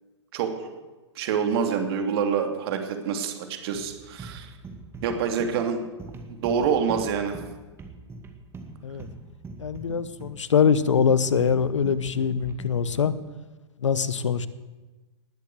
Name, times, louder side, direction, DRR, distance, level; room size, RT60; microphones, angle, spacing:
voice 1, 0.3-0.7 1.1-4.5 5.0-5.8 6.3-7.4, right 6 dB, 55° right, 5 dB, 2.9 m, -26 dB
sound 1, 3.7-13.3, right 3 dB, 15° right, 2.3 m, -42 dB
voice 2, 9.6-13.1 13.8-14.5, left 7 dB, 90° left, 15 dB, 1.0 m, -23 dB
19.5 x 8.3 x 8.1 m, 1.2 s
hypercardioid pair, 125°, 15 cm